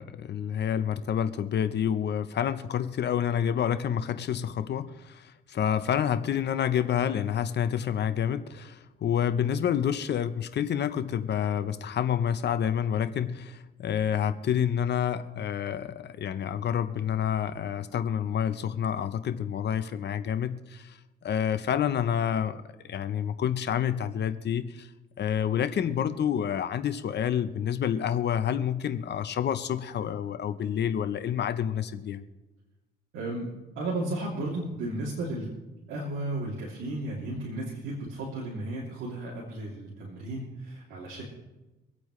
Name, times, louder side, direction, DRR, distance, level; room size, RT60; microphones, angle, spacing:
voice 1, 0.0-21.0 21.2-24.9 25.2-32.2, left 9 dB, 60° left, 11 dB, 0.9 m, -28 dB
voice 2, 33.1-33.5 33.7-35.5 35.9-41.2, right 2 dB, 85° right, -5 dB, 3.0 m, -34 dB
25.5 x 8.7 x 3.2 m, 1.1 s
cardioid pair, 90°, 20 cm